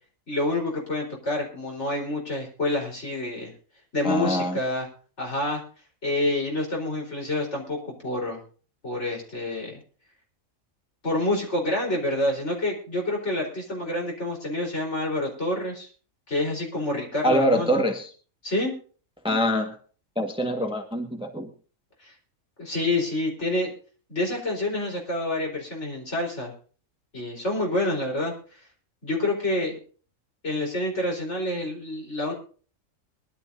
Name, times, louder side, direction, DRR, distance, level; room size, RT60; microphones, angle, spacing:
voice 1, 0.3-3.5 3.9-4.9 5.2-5.6 6.0-8.4 8.8-9.8 11.0-15.9 16.3-17.8 18.4-18.7 22.0-22.1 22.6-23.7 24.1-26.5 27.1-28.3 29.0-29.8 30.4-32.3, left 1 dB, 55° left, -1 dB, 4.6 m, -27 dB
voice 2, 4.0-4.6 17.2-18.1 19.2-19.7 20.1-21.5, equal, 5° right, 3 dB, 1.5 m, -24 dB
22.5 x 12.0 x 2.7 m, 0.39 s
omnidirectional pair, 1.4 m